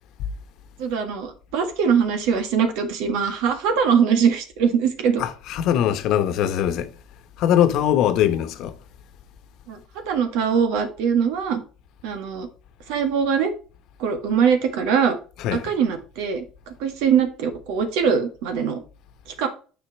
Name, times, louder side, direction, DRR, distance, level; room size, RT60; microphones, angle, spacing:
voice 1, 0.8-5.2 9.7-9.8 10.1-11.6 12.0-12.5 12.9-13.5 14.0-15.2 15.5-16.4 16.8-18.8 19.4-19.5, right 7 dB, 75° right, 1.7 m, -22 dB
voice 2, 5.2-6.9 7.4-8.7 15.4-15.7, left 10 dB, 70° left, 1.1 m, -21 dB
9.0 x 5.1 x 4.6 m
hypercardioid pair, 70°, 0 cm